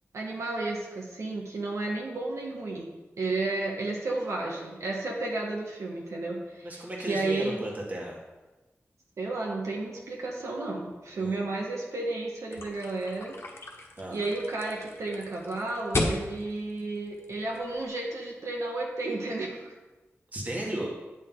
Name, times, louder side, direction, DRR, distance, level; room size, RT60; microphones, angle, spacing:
voice 1, 0.1-2.9 3.2-7.7 9.2-13.4 14.1-19.7, right 2 dB, 85° right, -2 dB, 1.5 m, -32 dB
voice 2, 6.6-8.2 11.2-11.4 14.0-14.2 20.3-20.9, right 1 dB, 35° right, -2 dB, 1.7 m, -35 dB
sound 1, 12.5-17.9, left 2 dB, 55° left, 1.2 m, -35 dB
9.1 x 6.6 x 3.9 m, 1.1 s
wide cardioid pair, 115°, 5 cm